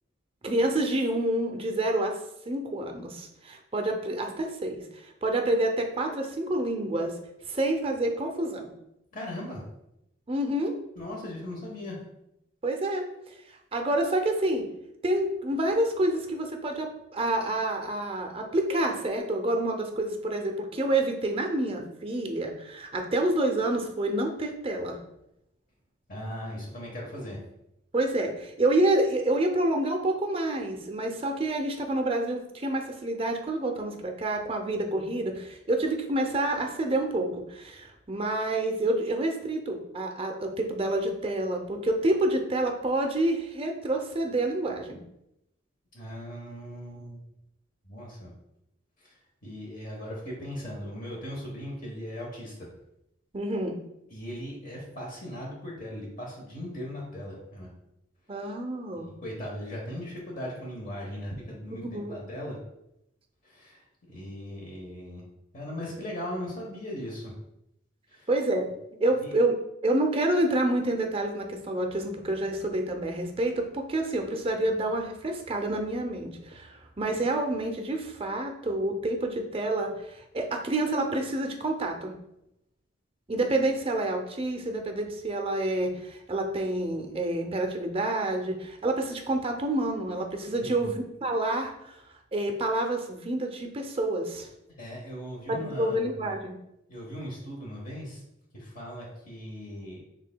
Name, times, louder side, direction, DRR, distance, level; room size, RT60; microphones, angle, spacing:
voice 1, 0.4-2.2 2.5-7.2 7.5-8.7 10.3-10.8 12.6-13.0 13.7-14.7 15.0-25.0 27.9-45.0 53.3-53.8 58.3-59.1 61.7-62.2 68.3-68.7 69.0-69.6 69.8-82.1 83.3-92.0 92.3-94.5 95.5-96.5, right 1 dB, 25° right, 4 dB, 0.5 m, -28 dB
voice 2, 9.1-9.6 11.0-12.0 26.1-27.4 45.9-47.2 47.8-48.3 49.0-49.1 49.4-52.7 54.1-57.7 59.2-62.6 63.4-63.8 64.1-65.3 65.5-67.3 68.1-68.3 69.2-69.3 90.6-90.9 94.8-96.4 96.9-98.2 98.5-100.0, equal, 40° left, -2 dB, 1.1 m, -38 dB
6.4 x 3.6 x 2.2 m, 0.83 s
head